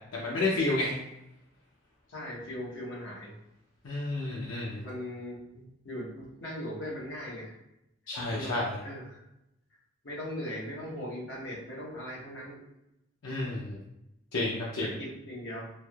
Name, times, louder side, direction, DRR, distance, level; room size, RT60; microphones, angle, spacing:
voice 1, 0.1-0.9 3.8-4.8 8.1-8.8 13.2-13.8 14.3-14.9, left 2 dB, 85° left, -5 dB, 0.5 m, -30 dB
voice 2, 2.1-3.3 4.8-7.5 8.3-9.2 10.0-12.6 14.8-15.7, equal, 70° left, -5 dB, 0.9 m, -39 dB
3.3 x 2.7 x 2.3 m, 0.87 s
head